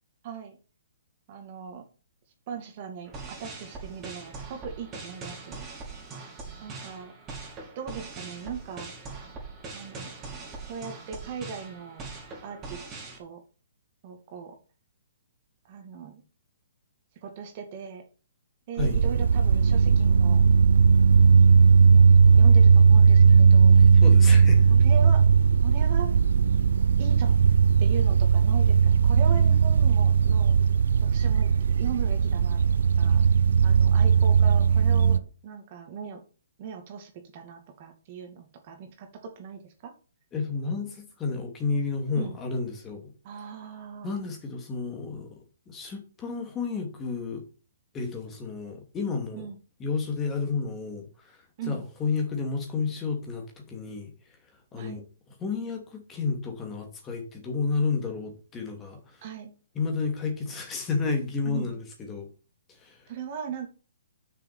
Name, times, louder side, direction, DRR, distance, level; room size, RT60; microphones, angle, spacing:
voice 1, 0.2-0.6 1.3-1.8 2.5-5.6 6.6-7.1 7.8-8.9 9.7-10.1 10.7-12.1 12.4-12.9 13.2-13.4 14.0-14.6 15.7-16.2 17.2-18.0 18.7-20.4 21.9-22.0 22.3-23.8 24.7-25.2 25.6-26.1 27.0-27.4 27.8-30.5 31.1-31.5 31.8-32.6 33.0-33.2 33.6-36.2 36.6-39.9 42.1-42.4 43.2-44.1 49.3-49.6 51.6-51.8 54.8-55.0 59.2-59.5 61.4-61.7 63.1-63.7, right 7 dB, 40° right, 2.4 m, -38 dB
sound 1, 3.0-13.2, right 3 dB, 20° right, 3.7 m, -41 dB
sound 2, 18.8-35.2, right 6 dB, 70° right, 0.6 m, -18 dB
voice 2, 23.8-24.7 40.3-43.1 44.0-47.4 47.9-49.5 49.8-54.4 54.7-55.0 55.4-59.2 59.7-62.3 62.7-63.1, left 4 dB, 20° left, 2.7 m, -31 dB
6.7 x 6.6 x 6.8 m
hypercardioid pair, 135°, 0 cm